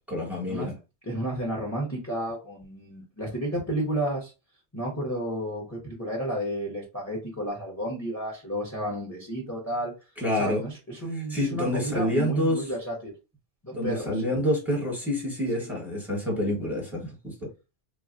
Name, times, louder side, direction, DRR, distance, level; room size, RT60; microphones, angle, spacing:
voice 1, 0.1-0.7 10.2-10.6 11.1-12.7 13.7-17.5, left 1 dB, ahead, 1.0 m, -28 dB
voice 2, 1.1-4.3 4.7-9.9 10.4-13.1 13.6-14.3 15.6-15.7, right 1 dB, 15° left, 0.7 m, -32 dB
3.1 x 2.3 x 2.5 m
omnidirectional pair, 1.2 m